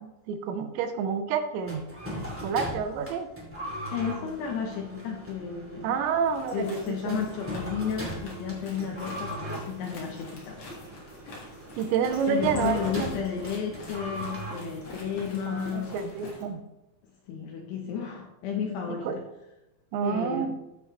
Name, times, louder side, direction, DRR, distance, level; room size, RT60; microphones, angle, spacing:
voice 1, 0.0-1.8 2.2-3.3 5.8-6.8 7.1-7.2 11.8-13.1 15.5-16.6 19.1-19.2 19.9-20.5, right 6 dB, 85° right, 7 dB, 2.9 m, -29 dB
sound 1, 1.6-16.3, right 1 dB, 10° right, 0.7 m, -40 dB
voice 2, 3.9-6.0 6.5-10.6 12.3-16.0 17.3-19.2 20.0-20.5, left 7 dB, 75° left, 1 dB, 2.8 m, -32 dB
sound 2, 6.2-16.4, left 2 dB, 60° left, 1.4 m, -46 dB
14.5 x 6.3 x 3.1 m, 0.92 s
omnidirectional pair, 5.3 m